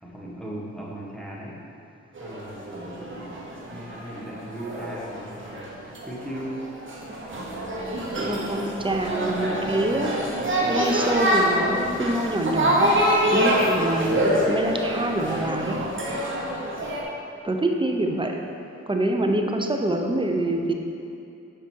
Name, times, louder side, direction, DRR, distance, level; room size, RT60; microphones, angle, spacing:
voice 1, 0.0-1.6 2.2-5.8 6.1-6.9, right 1 dB, ahead, -4 dB, 1.4 m, -37 dB
sound 1, 2.2-17.0, equal, 40° right, 1.2 m, -26 dB
voice 2, 8.1-10.1 10.7-12.9 13.3-15.8 17.4-18.4 18.9-20.7, right 1 dB, 15° right, 3 dB, 0.7 m, -25 dB
6.0 x 4.9 x 4.6 m, 2.6 s
cardioid pair, 55°, 31 cm